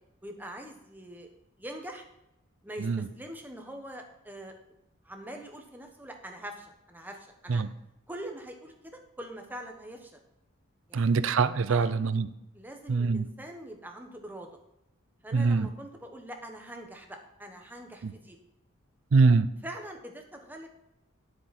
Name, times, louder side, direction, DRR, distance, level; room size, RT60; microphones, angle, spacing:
voice 1, 0.2-2.0 2.6-4.5 5.0-7.6 8.1-10.2 10.9-11.3 11.7-11.9 12.5-14.5 15.2-18.4 19.6-20.7, right 1 dB, 10° right, 3 dB, 1.1 m, -43 dB
voice 2, 10.9-12.3 12.9-13.3 15.3-15.7 19.1-19.5, right 4 dB, 65° right, 14 dB, 0.5 m, -23 dB
10.0 x 7.9 x 4.2 m, 0.86 s
head